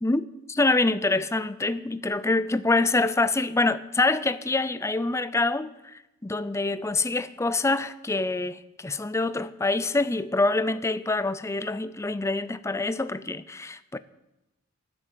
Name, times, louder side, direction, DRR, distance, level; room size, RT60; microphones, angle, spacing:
voice 1, 0.5-14.0, left 2 dB, 15° left, 0.5 m, -26 dB
13.5 x 9.7 x 7.4 m
head